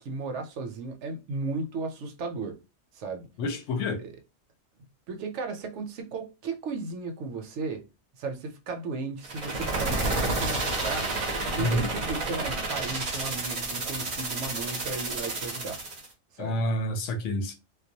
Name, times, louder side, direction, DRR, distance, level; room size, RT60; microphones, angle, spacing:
voice 1, 0.0-2.6 2.9-3.3 4.0-4.1 5.1-7.8 8.2-11.1 11.5-15.8 16.3-16.6, right 3 dB, 70° right, 0.8 m, -35 dB
voice 2, 3.4-4.0 11.6-11.9 16.4-17.5, left 1 dB, 75° left, 0.9 m, -28 dB
sound 1, 9.2-16.1, right 2 dB, 40° right, 0.5 m, -30 dB
2.2 x 2.2 x 2.6 m
omnidirectional pair, 1.3 m